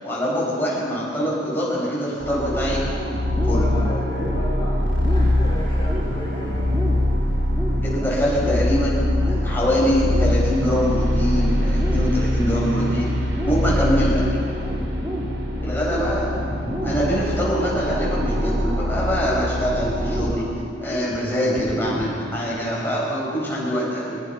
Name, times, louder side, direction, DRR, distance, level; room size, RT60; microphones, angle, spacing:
voice 1, 0.0-2.8 3.4-3.7 7.8-13.1 13.4-14.2 15.6-20.5 20.8-24.2, equal, 10° left, -6 dB, 6.8 m, -24 dB
sound 1, 2.2-20.2, left 1 dB, 75° right, 3.2 m, -23 dB
sound 2, 2.5-22.5, equal, 10° right, 3.5 m, -33 dB
voice 2, 3.4-6.7 13.5-13.9 14.7-14.9, left 1 dB, 30° left, -10 dB, 4.9 m, -34 dB
21.5 x 20.0 x 6.1 m, 2.3 s
head